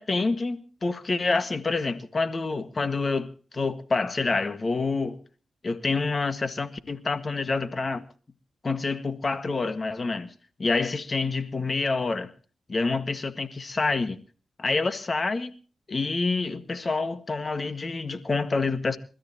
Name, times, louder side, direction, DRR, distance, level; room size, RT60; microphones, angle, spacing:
voice 1, 0.0-5.2 5.6-8.0 8.6-10.3 10.6-12.3 12.7-14.2 14.6-15.5 15.9-19.0, left 3 dB, 40° left, 1.6 m, -27 dB
28.5 x 13.0 x 2.9 m
cardioid pair, 65°, 0 cm